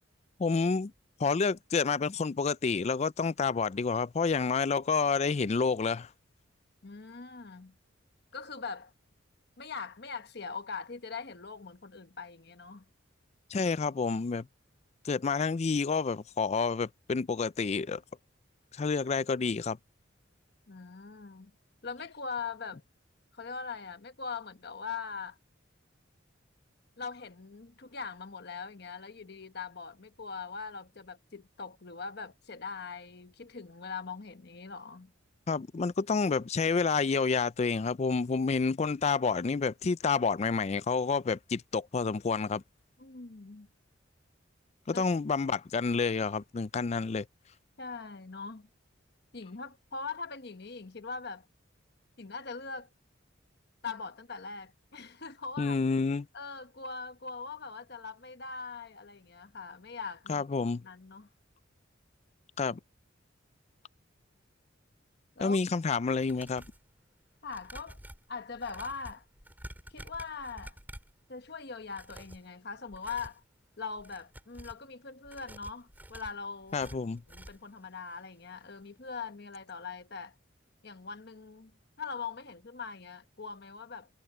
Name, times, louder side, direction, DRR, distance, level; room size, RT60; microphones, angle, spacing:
voice 1, 0.4-0.9 1.2-6.1 13.5-14.5 15.0-18.0 18.7-19.8 35.5-42.6 44.9-47.3 55.6-56.3 60.3-60.8 62.6-62.8 65.4-66.6 76.7-77.2, left 4 dB, 35° left, 0.4 m, -29 dB
voice 2, 6.8-7.7 8.3-8.9 9.6-12.8 20.7-21.5 21.8-22.8 23.3-25.4 27.0-35.1 43.0-43.7 44.9-45.0 47.8-48.7 49.3-51.5 52.2-52.9 53.8-55.8 56.3-60.4 60.8-61.3 65.4-65.6 67.4-68.0 68.3-69.2 69.9-70.8 71.3-73.4 73.8-76.9 77.3-80.3 80.8-81.7 82.0-84.1, left 5 dB, 55° left, 1.1 m, -41 dB
sound 1, 66.0-66.9 67.5-71.2 71.8-72.5 72.9-73.4 73.9-74.9 75.2-77.7 78.1-78.2 78.6-78.7, right 1 dB, 10° right, 7.2 m, -49 dB
head